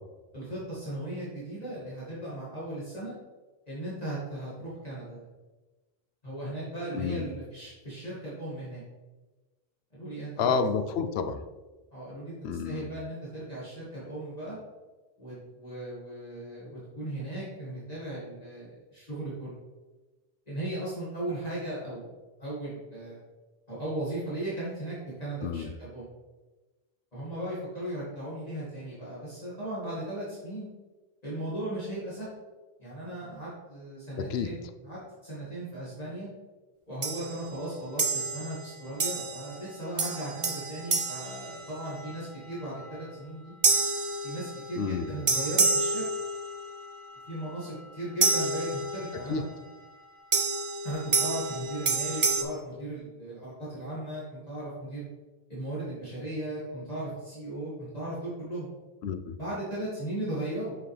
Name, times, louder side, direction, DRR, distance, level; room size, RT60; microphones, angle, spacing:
voice 1, 0.3-3.1 3.7-5.3 6.2-8.8 9.9-10.5 11.9-14.6 15.2-19.5 20.5-22.1 22.4-23.2 23.7-26.1 27.1-30.7 31.2-32.3 32.8-36.3 36.9-43.5 44.2-46.0 47.3-49.4 50.8-55.1 55.5-58.7 59.4-60.7, right 1 dB, 40° left, -9 dB, 2.2 m, -37 dB
voice 2, 6.9-7.3 10.4-11.4 12.4-12.9 25.4-25.7 34.2-34.5 44.8-45.1 49.3-49.4 59.0-59.4, left 5 dB, 85° left, 9 dB, 0.8 m, -29 dB
sound 1, 37.0-37.4 38.0-38.6 39.0-39.6 40.0-42.1 43.6-44.8 45.3-46.7 48.2-49.2 50.3-52.4, right 3 dB, 35° right, 0.6 m, -28 dB
7.0 x 6.1 x 3.3 m, 1.2 s
omnidirectional pair, 1.0 m